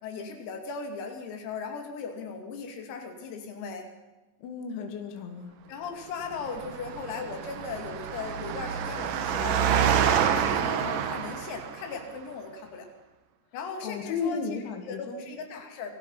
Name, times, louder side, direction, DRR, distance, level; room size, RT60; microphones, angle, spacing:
voice 1, 0.0-3.9 5.7-12.9 13.5-14.4 14.8-15.9, left 5 dB, 90° left, 4 dB, 5.3 m, -38 dB
voice 2, 4.4-5.5 13.8-15.3, left 5 dB, 65° left, 4 dB, 4.3 m, -34 dB
Engine, 6.3-12.0, right 8 dB, 70° right, 2.0 m, -28 dB
27.5 x 21.5 x 5.7 m, 1.1 s
omnidirectional pair, 5.9 m